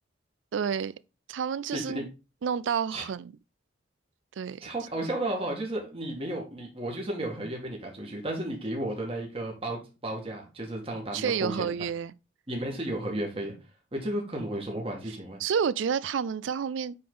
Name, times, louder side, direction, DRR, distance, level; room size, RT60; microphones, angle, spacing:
voice 1, 0.5-0.9 1.3-2.1 2.4-3.3 4.4-4.6 11.1-12.1 15.4-17.0, right 7 dB, 80° right, 0.4 m, -29 dB
voice 2, 1.7-2.1 2.9-3.0 4.6-11.7 12.5-13.5 13.9-15.4, right 1 dB, 30° right, 1.8 m, -33 dB
8.7 x 3.9 x 3.8 m
head